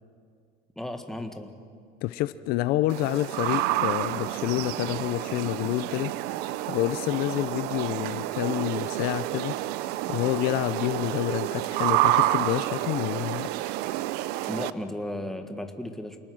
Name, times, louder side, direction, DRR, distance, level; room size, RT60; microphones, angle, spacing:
voice 1, 0.8-1.5 14.5-16.2, left 1 dB, ahead, 5 dB, 1.6 m, -35 dB
voice 2, 2.0-6.1 6.4-9.6 10.1-13.5, left 15 dB, 60° left, 14 dB, 0.6 m, -28 dB
sound 1, 2.9-14.7, right 15 dB, 65° right, 0.7 m, -29 dB
28.5 x 19.5 x 6.3 m, 2.3 s
cardioid pair, 145°, 17 cm